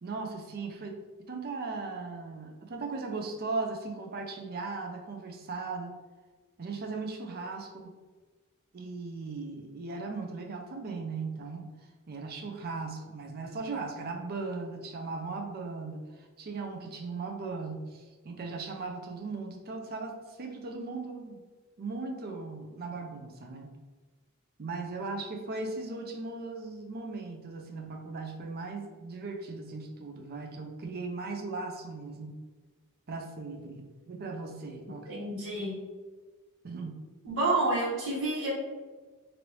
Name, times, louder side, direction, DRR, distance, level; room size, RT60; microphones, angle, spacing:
voice 1, 0.0-1.0 1.3-5.9 6.6-7.9 8.7-11.7 12.1-21.4 21.8-23.7 24.6-32.4 33.1-35.1 36.6-37.0, right 3 dB, 45° right, 3 dB, 0.5 m, -38 dB
voice 2, 35.1-35.8 37.2-38.5, right 2 dB, 65° right, -7 dB, 1.5 m, -29 dB
3.2 x 2.6 x 3.0 m, 1.3 s
head